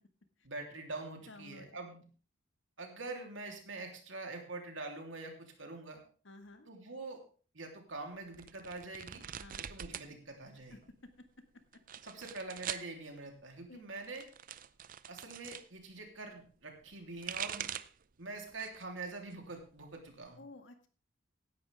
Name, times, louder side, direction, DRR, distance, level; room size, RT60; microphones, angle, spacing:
voice 1, 0.4-2.0 2.8-6.0 6.7-7.2 7.5-9.2 9.6-10.8 12.0-14.2 15.1-17.7 18.2-20.4, right 3 dB, 70° right, 2 dB, 3.4 m, -45 dB
voice 2, 1.3-1.7 6.2-6.7 9.4-9.7 10.7-11.3 13.7-13.8 20.4-20.9, left 2 dB, 65° left, 7 dB, 1.8 m, -53 dB
sound 1, 8.3-10.1 10.4-11.1 11.7-12.9 13.9-15.7 16.9-18.0 18.5-18.9 19.3-20.3, right 9 dB, 45° right, 0.6 m, -43 dB
16.5 x 11.0 x 3.5 m, 0.39 s
head